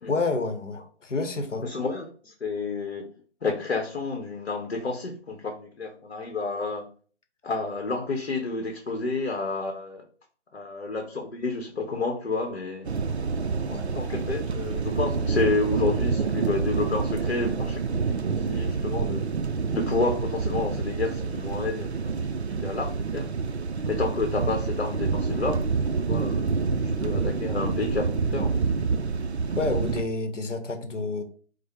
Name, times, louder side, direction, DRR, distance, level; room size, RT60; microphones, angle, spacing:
voice 1, 0.1-1.7 13.7-13.9 29.5-31.2, left 3 dB, 85° left, 6 dB, 0.9 m, -29 dB
voice 2, 1.6-3.1 3.4-6.9 7.4-10.0 10.5-12.9 13.8-19.3 19.7-23.3 23.9-28.6, left 3 dB, 65° left, 3 dB, 0.8 m, -30 dB
sound 1, 12.8-30.0, right 5 dB, 65° right, 0.5 m, -27 dB
5.0 x 2.0 x 4.2 m, 0.43 s
figure-of-eight pair, 175°, 36 cm